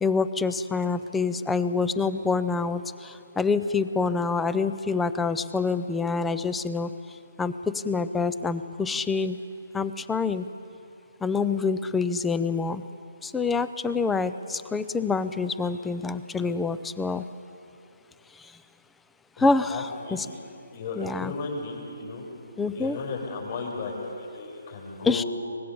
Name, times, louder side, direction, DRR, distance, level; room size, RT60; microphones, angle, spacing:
voice 1, 0.0-6.9 7.4-9.4 9.7-10.4 11.2-12.8 13.2-17.2 19.4-20.3 21.0-21.3 22.6-23.0 25.0-25.2, left 4 dB, 5° left, 13 dB, 0.5 m, -26 dB
voice 2, 19.4-20.2 20.7-22.2 22.7-25.3, left 4 dB, 40° left, -1 dB, 6.3 m, -35 dB
23.5 x 20.0 x 7.0 m, 2.7 s
hypercardioid pair, 165°, 0 cm